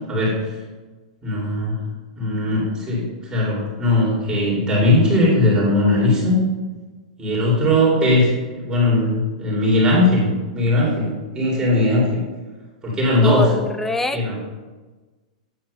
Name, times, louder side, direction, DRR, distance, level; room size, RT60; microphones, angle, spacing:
voice 1, 0.1-0.4 1.2-1.7 2.2-3.0 3.3-6.4 7.2-12.2 12.8-13.5 14.1-14.3, left 1 dB, 20° right, -5 dB, 2.6 m, -19 dB
voice 2, 13.1-14.3, left 2 dB, 5° left, 10 dB, 0.4 m, -25 dB
8.4 x 3.9 x 5.3 m, 1.3 s
hypercardioid pair, 125°, 4 cm